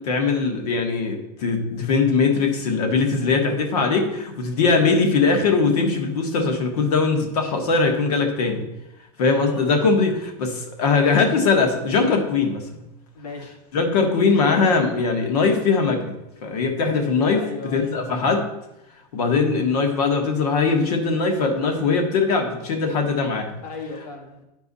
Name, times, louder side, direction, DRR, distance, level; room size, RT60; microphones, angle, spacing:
voice 1, 0.0-8.6 9.2-12.8 13.7-16.1 16.4-18.4 19.1-23.6, left 4 dB, 70° left, 4 dB, 1.5 m, -21 dB
voice 2, 9.3-9.7 13.1-13.6 17.3-18.3 23.6-24.4, left 3 dB, 90° left, 0 dB, 2.3 m, -36 dB
10.5 x 4.6 x 4.1 m, 0.91 s
supercardioid pair, 175°, 20 cm